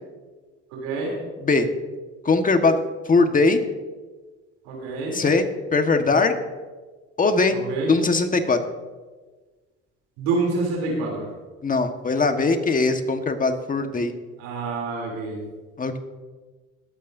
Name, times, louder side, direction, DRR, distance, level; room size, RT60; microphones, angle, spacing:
voice 1, 0.7-1.1 4.7-5.2 7.5-7.9 10.2-11.3 14.4-15.4, right 3 dB, 85° right, -1 dB, 3.3 m, -27 dB
voice 2, 2.2-2.8 3.1-3.6 5.1-5.4 5.7-6.3 7.2-7.6 7.9-8.6 11.6-14.1 15.8-16.0, left 3 dB, 30° left, 6 dB, 1.5 m, -20 dB
21.0 x 8.8 x 2.7 m, 1.3 s
supercardioid pair, 75°, 29 cm